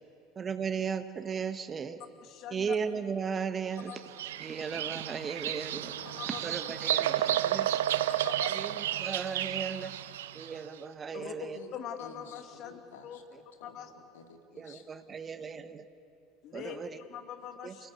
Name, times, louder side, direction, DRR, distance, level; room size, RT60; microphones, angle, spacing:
voice 1, 0.3-2.0 2.5-3.9 4.4-5.9 6.2-8.0 8.5-9.9 10.3-11.6 14.6-15.8 16.5-17.0 17.6-17.9, right 6 dB, 30° right, 10 dB, 1.3 m, -36 dB
voice 2, 2.2-2.7 3.9-4.0 6.2-6.4 8.2-8.5 11.1-11.3 11.7-13.2 13.6-13.9 16.4-17.9, left 9 dB, 50° left, 5 dB, 2.6 m, -43 dB
Bird vocalization bird call bird song, 3.9-10.6, right 12 dB, 70° right, 0.6 m, -32 dB
voice 3, 5.4-7.0 7.3-7.4 11.5-11.7 12.0-14.9, left 5 dB, 70° left, 3 dB, 2.7 m, -53 dB
29.0 x 18.0 x 8.6 m, 2.7 s
figure-of-eight pair, 70°, 0 cm